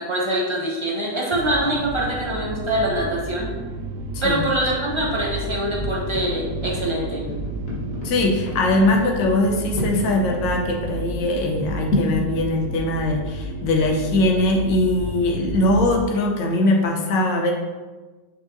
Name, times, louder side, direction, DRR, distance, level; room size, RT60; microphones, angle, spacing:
voice 1, 0.0-3.5 4.2-7.3, right 1 dB, 20° right, -3 dB, 0.8 m, -24 dB
sound 1, 1.3-16.0, right 2 dB, 75° right, 1.1 m, -31 dB
sound 2, 4.9-5.3 5.8-10.4 10.8-10.9 11.6-12.2, left 1 dB, 50° left, 1.6 m, -30 dB
voice 2, 8.0-17.5, left 2 dB, 75° left, 1 dB, 1.6 m, -21 dB
6.3 x 6.0 x 2.7 m, 1.3 s
omnidirectional pair, 2.1 m